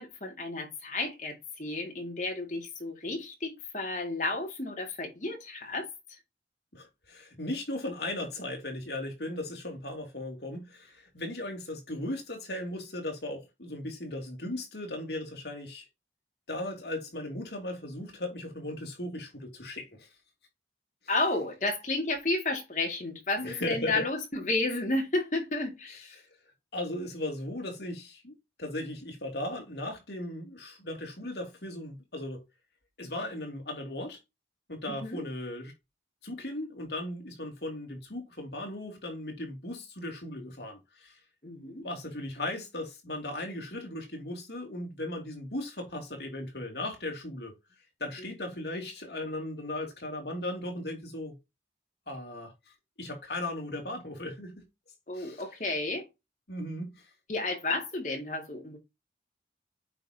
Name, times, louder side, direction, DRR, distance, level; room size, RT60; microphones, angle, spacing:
voice 1, 0.0-5.9 21.1-26.2 34.9-35.2 41.4-41.8 55.1-56.0 57.3-58.8, left 2 dB, 40° left, 2.3 m, -32 dB
voice 2, 6.7-15.9 16.5-20.1 23.4-24.1 26.7-28.3 28.6-32.4 33.0-34.2 34.7-35.7 36.2-41.2 41.8-47.5 48.0-51.3 52.1-52.5 53.0-54.6 55.1-55.5 56.5-57.0, left 1 dB, 60° left, 2.8 m, -37 dB
8.6 x 5.1 x 2.8 m
head